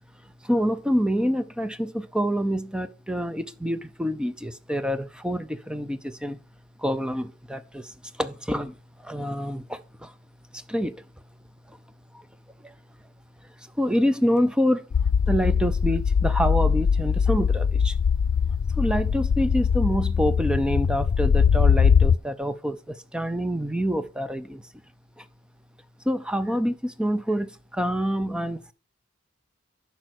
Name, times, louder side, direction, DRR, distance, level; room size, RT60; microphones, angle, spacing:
voice 1, 0.4-6.4 6.8-8.7 9.0-10.1 10.5-11.0 11.7-11.8 12.1-12.2 12.6-12.7 13.8-14.8 15.3-18.0 18.8-24.6 25.2-25.3 26.0-28.7, equal, 5° right, 0.5 m, -27 dB
sound 1, 14.9-22.2, left 6 dB, 90° left, 0.4 m, -21 dB
10.5 x 5.4 x 6.2 m
head